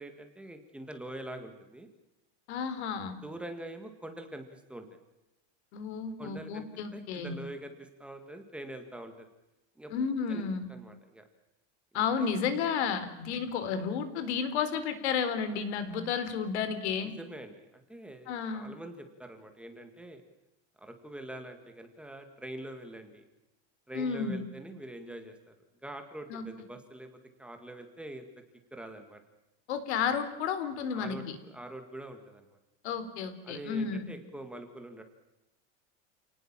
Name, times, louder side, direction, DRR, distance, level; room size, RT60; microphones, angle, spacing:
voice 1, 0.0-1.9 3.2-4.9 6.2-9.3 9.8-9.9 10.3-10.4 10.7-11.3 12.2-12.3 17.2-20.2 20.8-23.2 23.9-25.5 25.8-28.3 28.7-29.2 30.9-32.6 33.4-35.0, right 1 dB, 5° right, 5 dB, 1.8 m, -44 dB
voice 2, 2.5-3.1 5.7-7.3 9.9-10.7 11.9-17.1 18.3-18.7 23.9-24.4 26.3-26.5 29.7-31.4 32.8-34.1, left 6 dB, 75° left, 12 dB, 3.9 m, -32 dB
29.0 x 19.0 x 7.4 m, 0.98 s
supercardioid pair, 175°, 33 cm